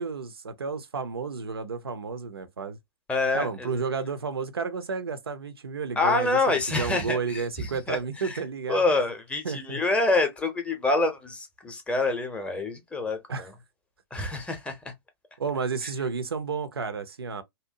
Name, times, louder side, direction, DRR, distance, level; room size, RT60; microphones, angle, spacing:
voice 1, 0.0-2.8 3.3-8.8 9.4-9.8 13.3-13.5 15.4-17.4, right 5 dB, 70° right, 0.5 m, -32 dB
voice 2, 3.1-3.7 6.0-8.4 8.7-13.5 14.1-14.9, left 3 dB, 10° left, 0.6 m, -27 dB
2.7 x 2.0 x 2.6 m
figure-of-eight pair, 110°, 13 cm